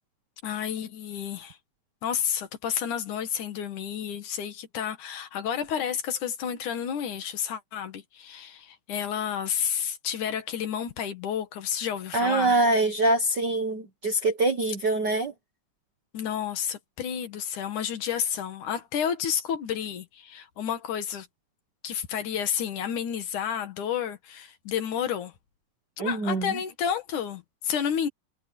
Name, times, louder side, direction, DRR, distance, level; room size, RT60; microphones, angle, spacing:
voice 1, 0.4-1.6 2.0-12.5 16.1-21.3 21.8-25.3 26.0-28.1, left 8 dB, 70° left, 3.2 m, -31 dB
voice 2, 12.1-15.3 26.0-26.6, right 2 dB, 50° right, 1.3 m, -24 dB
omnidirectional pair, 3.7 m